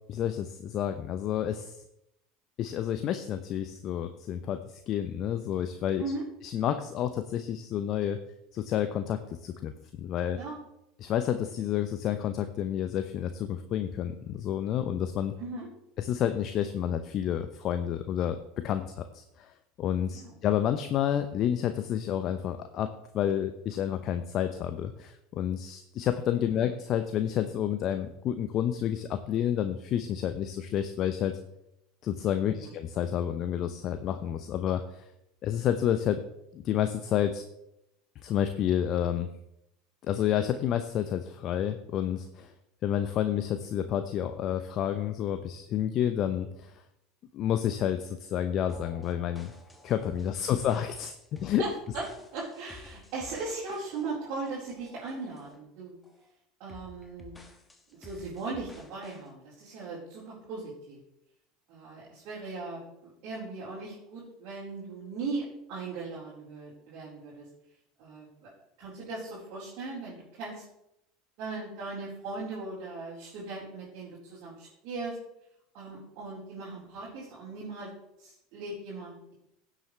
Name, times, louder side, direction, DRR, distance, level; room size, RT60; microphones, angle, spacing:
voice 1, 0.1-1.8 2.6-6.0 6.4-8.2 8.5-9.7 10.0-10.4 11.0-15.3 16.0-31.4 32.0-35.1 35.4-36.2 36.5-37.4 38.2-39.3 40.0-42.5 42.8-46.8 47.3-49.5 49.8-51.6, left 10 dB, 45° left, 9 dB, 0.7 m, -30 dB
sound 1, 48.7-55.7 56.0-56.3 56.7-59.3, left 3 dB, 10° left, 1.7 m, -52 dB
voice 2, 51.6-56.0 56.6-57.3 57.9-61.0 61.7-67.5 68.0-68.5 68.8-70.6 71.4-75.2 75.7-77.9 78.2-79.3, right 3 dB, 55° right, -9 dB, 4.2 m, -38 dB
16.5 x 7.5 x 3.3 m, 0.82 s
hypercardioid pair, 75°, 0 cm